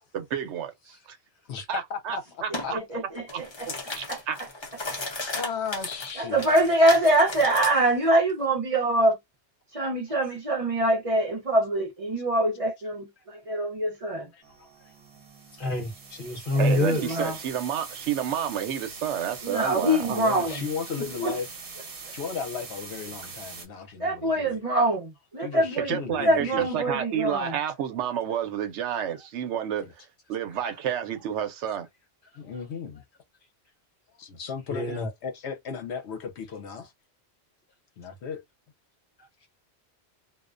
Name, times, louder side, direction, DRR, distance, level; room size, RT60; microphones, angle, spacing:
voice 1, 0.1-1.2 1.7-2.8 3.3-3.4 3.9-4.4 16.6-20.6 25.8-29.9 30.3-31.9, right 9 dB, 85° right, 1.0 m, -30 dB
voice 2, 1.5-2.2 2.6-2.7 5.3-6.4 14.6-14.7 20.1-21.5 22.1-24.6 25.4-27.0 29.8-29.9 32.4-33.0 34.2-36.9 38.0-38.4, left 6 dB, 75° left, 0.9 m, -35 dB
sound 1, 2.5-2.7 3.2-7.7, left 2 dB, 30° left, 0.5 m, -35 dB
voice 3, 2.5-3.7 4.1-4.2 6.2-9.2 9.7-14.3 16.5-17.4 19.4-20.6 21.2-21.4 24.0-26.0 26.2-27.6, right 1 dB, 35° right, 0.7 m, -24 dB
sound 2, 14.4-23.7, right 4 dB, 55° right, 1.0 m, -42 dB
voice 4, 15.6-17.0 34.7-35.1, left 1 dB, 50° left, 1.0 m, -26 dB
2.4 x 2.1 x 2.4 m
omnidirectional pair, 1.2 m